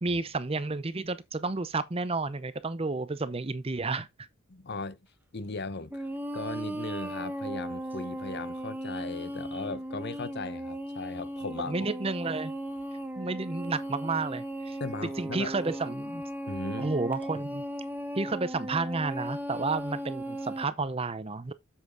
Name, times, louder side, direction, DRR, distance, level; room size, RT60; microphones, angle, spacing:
voice 1, 0.0-4.1 11.7-12.5 13.2-14.8 15.2-16.2 16.8-17.6 18.1-21.5, right 3 dB, 25° right, 0.6 m, -31 dB
voice 2, 4.5-5.0 5.3-6.1 6.3-11.8 14.8-15.5 16.5-16.9, left 3 dB, 50° left, 0.8 m, -38 dB
sound 1, 5.9-20.6, right 1 dB, 10° right, 1.0 m, -37 dB
8.2 x 7.3 x 3.9 m
head